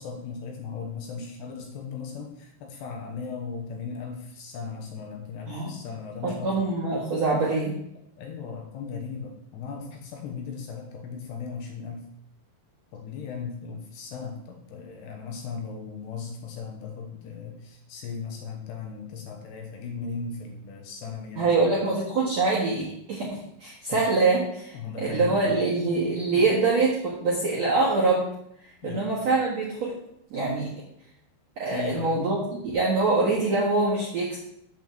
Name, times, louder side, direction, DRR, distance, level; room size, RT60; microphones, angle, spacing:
voice 1, 0.0-6.6 8.2-12.0 12.9-21.9 23.7-24.0 24.7-25.6 26.3-26.4 28.8-29.1 31.7-32.2, left 5 dB, 70° left, 1 dB, 3.0 m, -37 dB
voice 2, 5.5-5.8 6.2-7.8 21.4-24.7 25.0-28.3 28.8-29.9 30.3-30.7 31.6-32.4 32.7-34.4, right 3 dB, 55° right, -7 dB, 1.9 m, -24 dB
7.9 x 5.4 x 7.3 m, 0.73 s
omnidirectional pair, 5.6 m